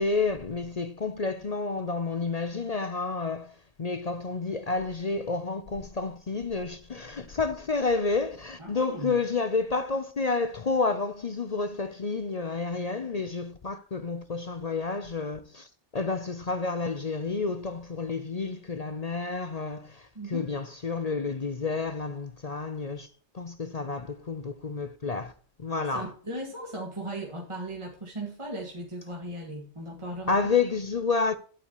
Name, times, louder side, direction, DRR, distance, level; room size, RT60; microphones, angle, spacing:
voice 1, 0.0-23.1 23.3-25.3 25.6-26.1 30.3-31.4, left 4 dB, 40° left, 0.7 m, -30 dB
voice 2, 8.6-9.1 20.2-20.5 25.7-30.4, right 1 dB, 25° right, 1.9 m, -37 dB
10.5 x 8.6 x 3.0 m
omnidirectional pair, 1.2 m